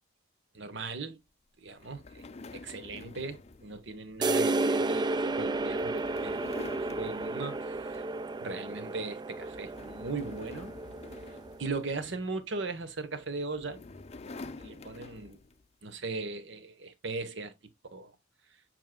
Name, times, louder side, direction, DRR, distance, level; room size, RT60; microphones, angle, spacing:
voice 1, 0.5-1.2 1.6-2.2 2.5-6.4 6.8-8.0 8.4-10.7 11.6-13.8 14.6-15.4 15.8-17.5 17.9-18.1, right 3 dB, 65° right, 1.0 m, -38 dB
sound 1, 1.8-8.3 8.7-9.0 9.4-12.4 13.2-15.7, left 3 dB, 35° left, 0.5 m, -48 dB
sound 2, 4.2-11.7, right 2 dB, 20° right, 0.3 m, -32 dB
7.2 x 6.0 x 2.2 m
head